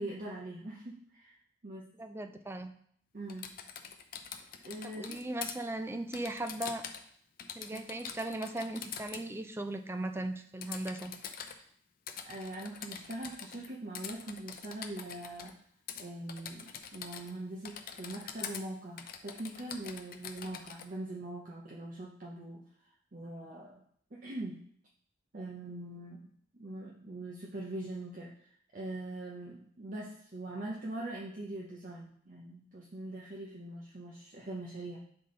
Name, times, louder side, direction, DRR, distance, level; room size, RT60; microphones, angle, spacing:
voice 1, 0.0-1.4 1.6-1.9 3.1-3.5 4.6-5.2 7.7-7.8 12.2-15.5 16.0-22.6 23.1-23.8 24.1-24.6 25.3-26.2 26.5-28.3 28.7-35.0, right 1 dB, 45° right, -2 dB, 0.7 m, -42 dB
voice 2, 2.0-2.7 4.8-6.8 7.6-11.1, right 1 dB, 10° right, 6 dB, 0.4 m, -38 dB
Typing, 3.3-5.5 6.1-7.1 7.4-9.2 10.6-11.6 12.1-13.7 13.9-15.5 15.9-16.0 16.3-17.4 17.6-18.6 19.0-20.9, left 7 dB, 50° left, 0.6 m, -44 dB
8.7 x 3.8 x 3.8 m, 0.64 s
head